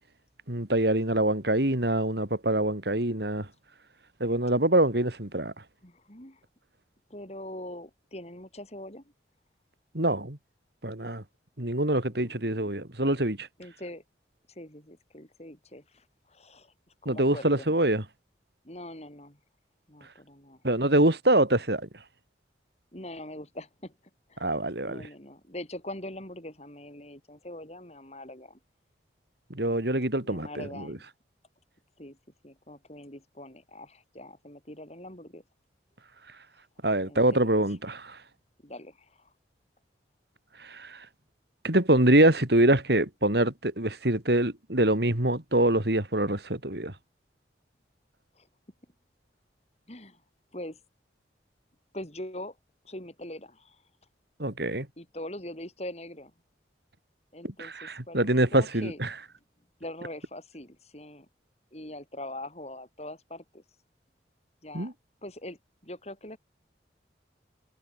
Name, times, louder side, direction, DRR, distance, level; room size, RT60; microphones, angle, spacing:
voice 1, 0.5-3.5 4.2-5.5 9.9-10.4 10.8-11.2 11.6-13.5 17.0-18.0 20.6-21.9 24.4-25.1 29.5-30.9 36.8-38.2 40.6-41.0 41.6-46.9 54.4-54.9 57.6-59.1 64.7-64.9, right 1 dB, 60° right, 3.3 m, -25 dB
voice 2, 5.8-6.4 7.1-9.0 12.1-12.8 13.6-14.0 14.5-16.7 17.0-17.8 18.6-19.4 19.9-20.6 22.9-24.0 24.3-24.5 24.8-28.6 30.2-31.0 32.0-32.2 32.4-35.4 37.0-37.4 38.6-39.3 48.4-48.5 49.9-50.2 50.5-50.8 51.9-52.6 52.8-53.8 55.0-56.3 57.3-59.0 59.8-61.3 61.7-63.6 64.6-64.9 65.2-66.4, left 1 dB, 35° left, 6.1 m, -42 dB
head